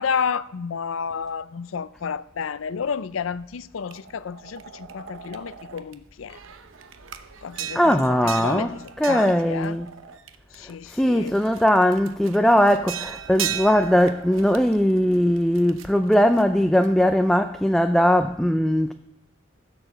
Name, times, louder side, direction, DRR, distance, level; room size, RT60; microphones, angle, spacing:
voice 1, 0.0-6.4 7.4-9.8 10.5-11.4, left 6 dB, 85° left, 0.5 m, -31 dB
sound 1, 3.9-5.9 6.3-10.7 11.2-17.1, right 9 dB, 90° right, 0.8 m, -37 dB
voice 2, 7.7-8.7 9.0-9.9 10.9-18.9, equal, ahead, 0.4 m, -19 dB
15.0 x 7.0 x 6.6 m
head